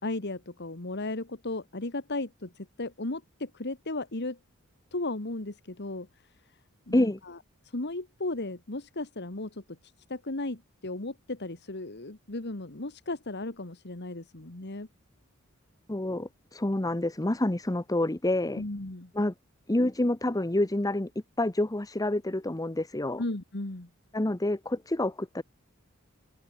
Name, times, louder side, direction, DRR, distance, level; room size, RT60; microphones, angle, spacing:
voice 1, 0.0-4.4 4.9-6.1 6.9-7.4 7.7-9.8 10.1-14.9 18.6-19.1 23.2-23.9, left 2 dB, 55° left, 1.8 m, -35 dB
voice 2, 15.9-18.6 19.1-19.3 19.7-21.1 21.4-23.2 24.1-25.4, left 1 dB, 15° left, 0.9 m, -28 dB
head